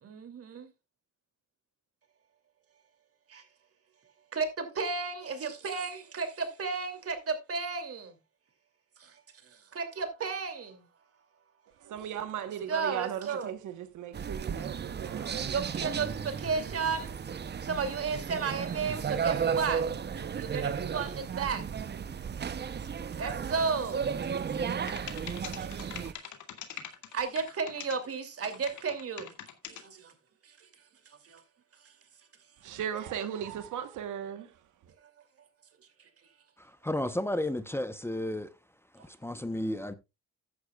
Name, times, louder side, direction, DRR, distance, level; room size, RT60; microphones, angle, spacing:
voice 1, 0.0-0.7 3.3-3.4 4.3-8.1 9.0-9.2 9.7-10.8 12.7-13.5 15.5-17.1 17.6-19.8 20.1-21.7 22.6-22.7 23.2-24.3 24.7-24.8 25.4-25.9 27.1-29.3 29.7-30.1 30.4-30.5 31.2-31.4, right 5 dB, 50° right, 2.7 m, -33 dB
voice 2, 11.8-15.6 32.6-34.9, right 9 dB, 80° right, 1.2 m, -37 dB
sound 1, 14.1-26.1, right 7 dB, 35° right, 0.7 m, -34 dB
sound 2, 24.6-24.7 24.9-28.0 28.4-29.8, left 9 dB, 75° left, 2.0 m, -42 dB
voice 3, 36.6-38.5 38.9-39.9, left 1 dB, 10° left, 0.8 m, -33 dB
14.0 x 9.8 x 2.3 m
cardioid pair, 90°, 30 cm